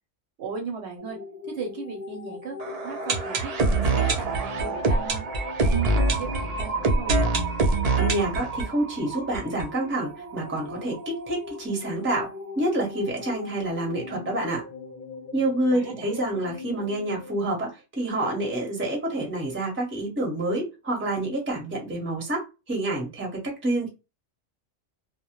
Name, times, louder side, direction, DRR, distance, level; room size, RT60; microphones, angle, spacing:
voice 1, 0.4-1.2 1.4-2.6 2.8-5.3 5.6-7.4 15.7-16.3, right 5 dB, 65° right, 2 dB, 0.8 m, -37 dB
sound 1, 1.0-8.1 9.0-17.5, left 4 dB, 50° left, 0.5 m, -41 dB
sound 2, 2.6-10.4 10.6-10.7 10.9-11.0 11.5-11.6, right 3 dB, 80° right, 0.3 m, -25 dB
voice 2, 8.0-12.3 12.6-14.6 15.3-23.9, right 1 dB, 10° right, 0 dB, 0.6 m, -28 dB
2.1 x 2.1 x 2.8 m, 0.28 s
omnidirectional pair, 1.3 m